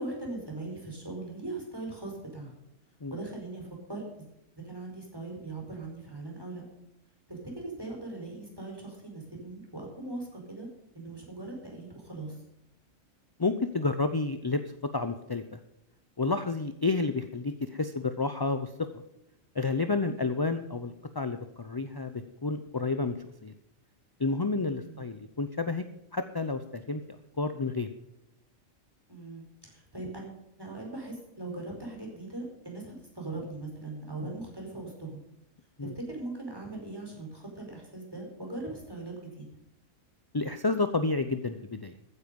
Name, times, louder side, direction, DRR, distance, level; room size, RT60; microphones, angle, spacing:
voice 1, 0.0-2.5 3.1-4.3 4.6-6.6 7.3-10.7 10.9-12.4 20.1-20.3 24.7-25.0 29.1-35.2 35.8-39.4, right 2 dB, 15° right, 0 dB, 5.0 m, -40 dB
voice 2, 13.4-14.6 14.9-15.6 16.2-18.9 19.5-23.2 23.4-23.5 24.2-25.8 26.1-27.0 27.4-27.9 35.8-35.9 40.3-41.9, left 3 dB, 25° left, 9 dB, 0.5 m, -30 dB
15.0 x 9.9 x 5.3 m, 0.85 s
omnidirectional pair, 1.4 m